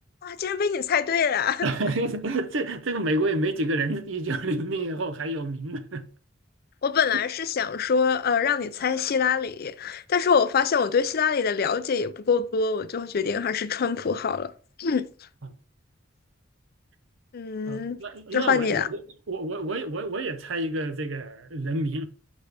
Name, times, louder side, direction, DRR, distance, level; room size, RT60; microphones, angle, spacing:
voice 1, 0.2-1.7 6.8-14.5 14.8-15.0 17.3-18.0 18.3-18.9, left 6 dB, 50° left, 0.5 m, -24 dB
voice 2, 1.6-6.1 15.4-15.5 17.7-19.0 19.3-22.1, right 2 dB, 75° right, 0.8 m, -29 dB
6.2 x 5.4 x 3.4 m
head